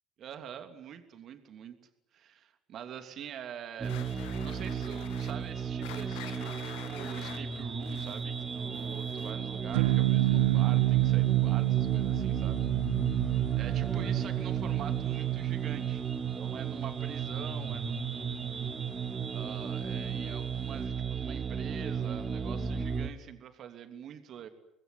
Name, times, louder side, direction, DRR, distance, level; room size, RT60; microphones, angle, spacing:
voice 1, 0.2-1.8 2.1-12.6 13.6-16.0 16.3-18.8 19.3-24.5, right 9 dB, 50° right, 8 dB, 3.0 m, -45 dB
sound 1, 3.8-9.5, left 11 dB, 70° left, 2.1 m, -48 dB
sound 2, 3.8-23.1, right 6 dB, 30° right, 3.1 m, -35 dB
sound 3, 9.7-20.3, right 17 dB, 75° right, 1.1 m, -30 dB
25.5 x 20.0 x 9.9 m, 0.82 s
figure-of-eight pair, 60°, 0 cm